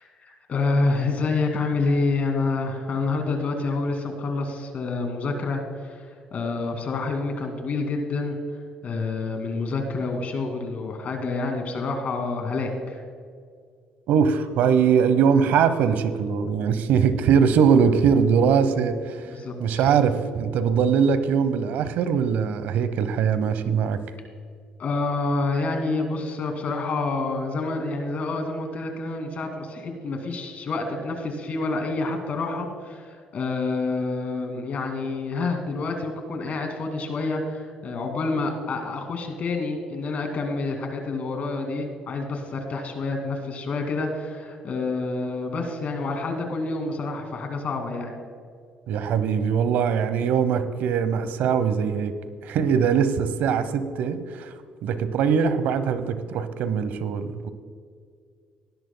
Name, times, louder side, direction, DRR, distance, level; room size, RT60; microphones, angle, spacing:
voice 1, 0.0-8.4 8.8-13.0 19.3-19.8 24.8-48.1 52.6-52.7, left 3 dB, 55° left, 4 dB, 2.2 m, -28 dB
voice 2, 14.1-19.3 19.6-24.0 48.9-52.1 52.4-54.5 54.8-57.5, right 7 dB, 75° right, 12 dB, 0.8 m, -21 dB
18.5 x 11.0 x 2.2 m, 2.1 s
supercardioid pair, 70°, 3 cm